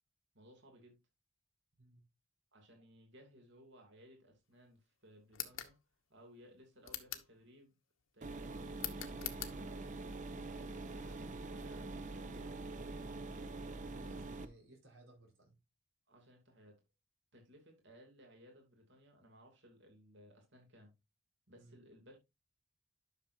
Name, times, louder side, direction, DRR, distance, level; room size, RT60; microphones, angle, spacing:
voice 1, 0.3-1.0 2.5-5.8 6.1-7.7 8.1-10.5 10.9-12.9 16.1-16.8 17.3-20.9 21.5-22.2, equal, 60° right, 2.8 m, -61 dB
sound 1, 5.3-5.7 6.8-7.3 8.8-9.6, left 12 dB, 90° left, 1.2 m, -43 dB
sound 2, 8.2-14.4, right 2 dB, 40° right, 0.8 m, -44 dB
voice 2, 13.9-15.6 21.6-21.7, right 2 dB, 80° right, 4.7 m, -61 dB
11.5 x 6.4 x 2.7 m
head